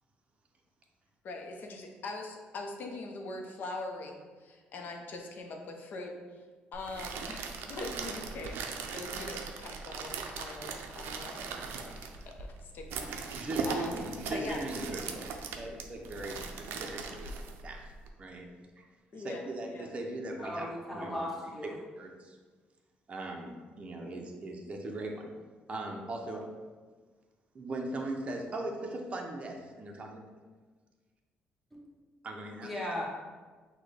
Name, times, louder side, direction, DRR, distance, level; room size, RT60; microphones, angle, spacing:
voice 1, 1.2-6.1 6.7-12.1 12.6-14.6 19.1-19.9, left 2 dB, 60° left, 2 dB, 0.6 m, -42 dB
sound 1, 6.7-18.1, right 5 dB, 90° right, 0.4 m, -39 dB
voice 2, 13.3-15.3 15.5-17.9 18.2-18.5 18.8-18.9 19.1-21.3 22.0-22.4 23.1-25.3 25.7-26.4 27.5-30.2 32.2-32.7, right 2 dB, 35° right, 1 dB, 0.6 m, -39 dB
voice 3, 20.4-21.7 31.7-31.8 32.6-33.1, left 1 dB, ahead, -5 dB, 1.0 m, -37 dB
6.0 x 2.2 x 3.2 m, 1.4 s
cardioid pair, 110°, 4 cm